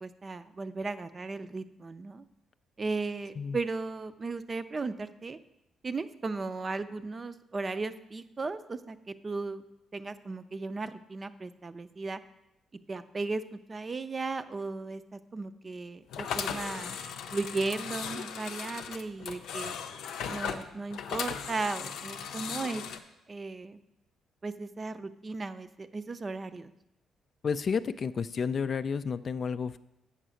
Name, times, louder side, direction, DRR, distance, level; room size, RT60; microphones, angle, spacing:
voice 1, 0.0-2.2 2.8-5.4 5.8-9.6 9.9-12.2 12.9-17.0 17.3-19.8 20.3-22.8 23.3-23.8 24.4-26.7, right 3 dB, 30° right, 11 dB, 0.5 m, -36 dB
sound 1, 16.1-23.0, left 7 dB, 85° left, 0.6 m, -37 dB
voice 2, 27.4-29.8, left 6 dB, 50° left, 13 dB, 0.3 m, -31 dB
7.9 x 5.6 x 6.2 m, 0.88 s
cardioid pair, 90°, 0 cm